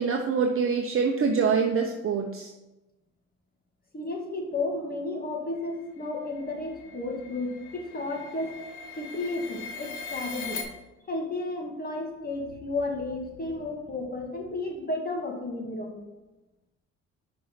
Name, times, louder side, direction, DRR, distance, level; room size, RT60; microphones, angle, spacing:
voice 1, 0.0-2.5, right 5 dB, 45° right, 3 dB, 0.8 m, -25 dB
voice 2, 3.9-8.6 9.0-10.6 11.1-16.1, left 2 dB, 30° left, 1 dB, 1.9 m, -33 dB
sound 1, 5.9-10.6, left 4 dB, 75° left, 1.7 m, -40 dB
5.6 x 5.3 x 5.7 m, 1.0 s
cardioid pair, 90°, 30 cm